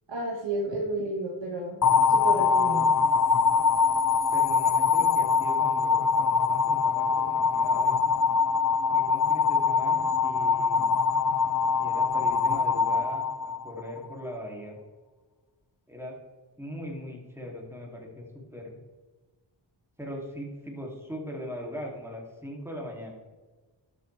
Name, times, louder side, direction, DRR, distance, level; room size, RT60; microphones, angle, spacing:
voice 1, 0.1-1.8 2.1-2.9, right 2 dB, 60° right, -1 dB, 1.5 m, -31 dB
sound 1, 1.8-14.0, left 5 dB, 40° left, 0.6 m, -23 dB
voice 2, 4.3-8.1 8.9-11.1 11.8-14.8 15.9-16.2 16.6-18.8 20.0-23.1, equal, 5° right, -1 dB, 2.8 m, -40 dB
12.5 x 6.7 x 3.4 m, 1.3 s
wide cardioid pair, 50°, 49 cm